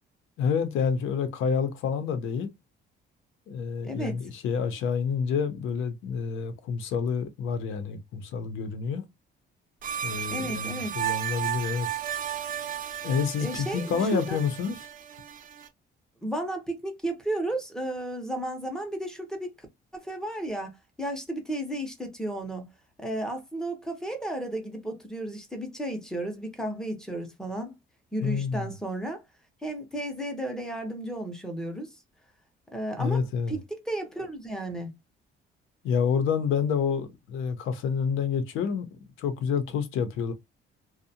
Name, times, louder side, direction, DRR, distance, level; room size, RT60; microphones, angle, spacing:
voice 1, 0.4-2.5 3.5-9.0 10.0-11.9 13.0-14.8 28.2-28.7 33.0-33.6 35.8-40.3, left 6 dB, 80° left, 0.6 m, -28 dB
voice 2, 3.8-4.2 10.3-10.9 13.4-14.4 16.2-19.7 19.9-22.7 23.0-27.7 28.1-29.2 29.6-31.9 32.7-34.9, right 1 dB, 5° left, 0.6 m, -33 dB
sound 1, 9.8-15.7, right 10 dB, 45° right, 0.4 m, -34 dB
2.6 x 2.1 x 2.7 m
cardioid pair, 155°, 20 cm